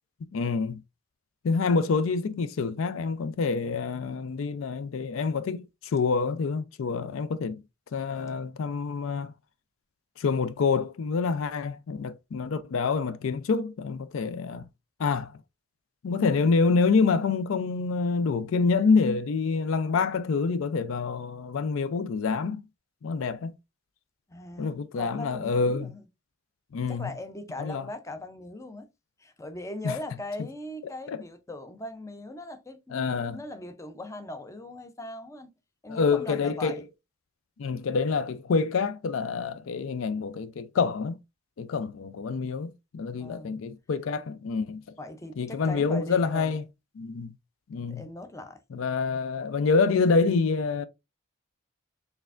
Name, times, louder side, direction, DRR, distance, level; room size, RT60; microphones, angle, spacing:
voice 1, 0.3-0.8 1.4-7.6 7.9-9.3 10.2-14.7 15.0-15.3 16.0-22.6 23.0-23.6 24.6-25.9 26.7-27.1 27.6-27.8 29.8-30.0 31.1-31.2 32.9-33.4 35.9-36.8 37.6-41.2 41.6-44.8 45.4-46.6 47.0-47.3 47.7-48.0 48.7-50.9, left 4 dB, 70° left, 0.4 m, -27 dB
voice 2, 24.3-26.1 26.9-28.9 29.2-35.5 35.8-36.8 43.1-43.6 45.0-46.6 47.9-48.6, left 1 dB, 15° left, 0.4 m, -40 dB
4.4 x 3.3 x 2.4 m
head